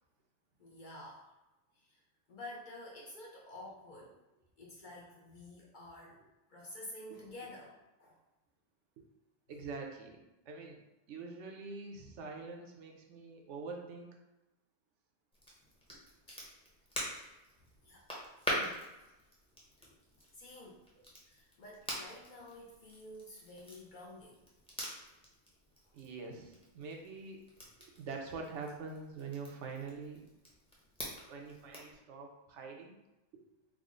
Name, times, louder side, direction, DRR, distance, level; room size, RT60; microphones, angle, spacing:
voice 1, 0.6-1.3 1.8-2.0 2.3-4.2 4.6-6.2 6.5-8.2 16.3-16.4 17.1-17.4 17.8-18.0 18.5-18.8 20.3-20.8 21.3-24.4, left 1 dB, 55° left, -3 dB, 0.6 m, -50 dB
voice 2, 9.5-10.8 11.1-14.1 25.9-27.4 27.8-30.2 31.3-33.0 33.3-33.4, right 4 dB, 80° right, 1 dB, 0.9 m, -45 dB
Crackle, 15.3-32.0, equal, 5° left, 0.6 m, -45 dB
3.7 x 2.0 x 3.6 m, 0.99 s
omnidirectional pair, 1.2 m